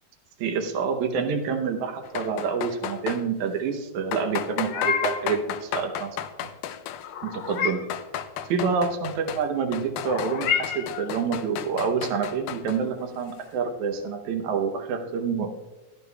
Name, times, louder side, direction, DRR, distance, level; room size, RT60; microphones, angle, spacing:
voice 1, 0.4-6.5 7.2-7.8 8.5-15.5, right 5 dB, 80° right, 4 dB, 2.3 m, -27 dB
sound 1, 2.0-3.2 4.1-7.1 7.7-9.5 9.7-12.8, left 10 dB, 85° left, 2.0 m, -33 dB
Meow, 4.4-5.3 7.0-8.0 10.0-11.1, left 7 dB, 70° left, 1.8 m, -29 dB
15.0 x 11.0 x 2.3 m, 1.1 s
omnidirectional pair, 3.3 m